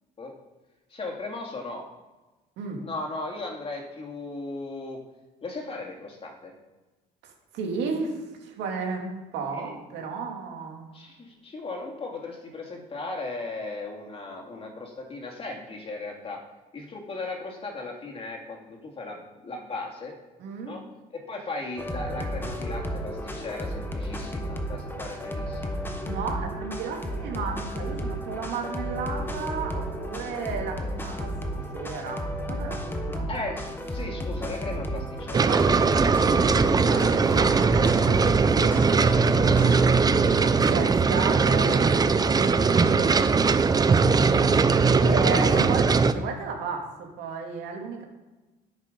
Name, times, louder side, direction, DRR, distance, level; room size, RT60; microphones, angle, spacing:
voice 1, 0.9-1.9 2.8-5.0 5.4-6.5 9.5-9.7 10.9-16.4 16.7-20.1 20.6-20.8 21.1-25.8 33.3-35.5 45.5-45.7, left 2 dB, 35° left, 0 dB, 2.5 m, -37 dB
voice 2, 7.2-10.8 20.4-20.7 26.0-31.3 31.7-33.3 35.5-35.7 35.9-39.8 40.4-44.1 44.4-44.5 45.0-48.0, right 5 dB, 85° right, 1 dB, 2.5 m, -34 dB
sound 1, 21.8-40.0, equal, 10° left, 1.3 m, -33 dB
sound 2, 35.3-46.1, right 4 dB, 25° right, 0.5 m, -20 dB
9.7 x 7.4 x 5.4 m, 1.1 s
cardioid pair, 110°, 17 cm